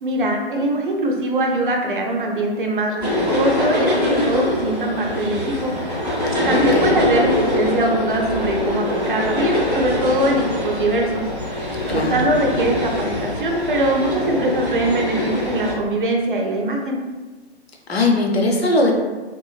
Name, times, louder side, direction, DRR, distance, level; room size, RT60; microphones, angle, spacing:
voice 1, 0.0-5.7 6.1-6.2 6.4-17.0, right 1 dB, 50° right, 1 dB, 0.5 m, -22 dB
sound 1, 3.0-15.7, left 1 dB, 5° right, 0.5 m, -23 dB
voice 2, 6.3-7.0 11.9-12.2 17.9-18.9, left 2 dB, 65° left, 0 dB, 0.7 m, -20 dB
2.9 x 2.4 x 2.2 m, 1.3 s
figure-of-eight pair, 135°, 33 cm